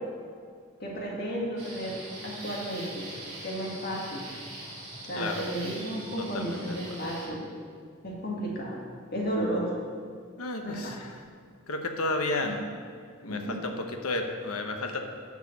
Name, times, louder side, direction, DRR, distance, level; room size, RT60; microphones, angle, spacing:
voice 1, 0.8-3.0 3.4-4.2 5.1-7.4 8.0-8.8 9.1-9.7 10.6-10.9 12.4-12.5 13.2-13.6, equal, 45° left, -3 dB, 1.9 m, -33 dB
sound 1, 1.6-7.3, right 2 dB, 30° right, 2.6 m, -42 dB
voice 2, 6.3-6.8 10.4-11.1 11.7-12.5 13.2-15.0, left 2 dB, 85° left, 4 dB, 1.0 m, -32 dB
11.0 x 4.9 x 7.2 m, 2.1 s
head